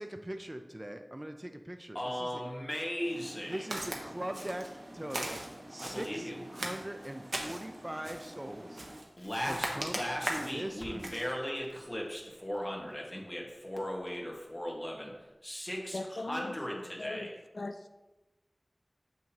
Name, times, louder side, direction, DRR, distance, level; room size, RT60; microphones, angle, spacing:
voice 1, 0.0-2.4 3.5-4.7 4.9-5.4 5.7-8.8 9.5-10.0 10.3-11.1, right 1 dB, 25° right, 6 dB, 0.5 m, -41 dB
voice 2, 1.9-3.7 5.8-6.4 9.2-15.1 15.4-17.3, equal, 25° left, -2 dB, 1.6 m, -37 dB
sound 1, 3.0-9.0, right 1 dB, 85° right, 1.4 m, -50 dB
Walk footsteps, 3.7-4.0 4.3-4.7 5.1-6.1 6.5-7.7 8.0-8.3 8.8-9.1 9.4-10.6 11.0-11.3, right 1 dB, 65° right, 1.0 m, -38 dB
Crackle, 9.2-16.0, equal, 50° left, 1.5 m, -57 dB
voice 3, 15.9-16.5 17.0-17.9, left 2 dB, 85° left, 7 dB, 0.3 m, -39 dB
7.0 x 6.1 x 2.9 m, 1.1 s
wide cardioid pair, 55°, 0 cm